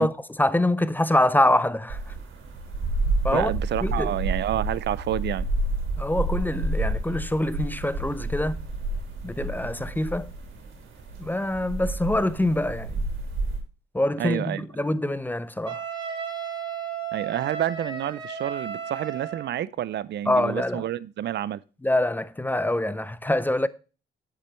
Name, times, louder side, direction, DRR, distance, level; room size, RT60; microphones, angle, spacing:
voice 1, 0.0-2.0 3.2-3.5 3.8-4.1 6.0-8.6 9.2-10.3 11.2-13.0 13.9-15.8 20.3-20.8 21.8-23.7, left 1 dB, 10° left, 0.5 m, -25 dB
sound 1, 1.9-13.6, right 2 dB, 80° right, 3.5 m, -30 dB
voice 2, 3.3-5.4 14.2-14.7 17.1-21.6, right 11 dB, 60° right, 0.5 m, -29 dB
Wind instrument woodwind instrument, 15.7-19.6, right 7 dB, 25° right, 3.7 m, -34 dB
9.8 x 7.6 x 3.1 m
cardioid pair, 90°, 20 cm